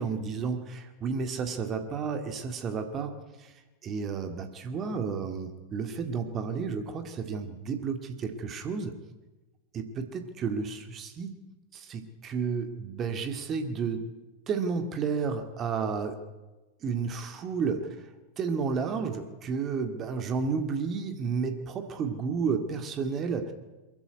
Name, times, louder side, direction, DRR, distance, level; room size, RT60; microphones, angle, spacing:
voice 1, 0.0-3.1 3.4-8.9 9.7-11.4 11.7-14.0 14.5-16.2 16.8-18.1 18.4-23.5, right 5 dB, 30° right, 7 dB, 2.1 m, -32 dB
22.5 x 14.5 x 9.6 m, 1.1 s
figure-of-eight pair, 90°, 0 cm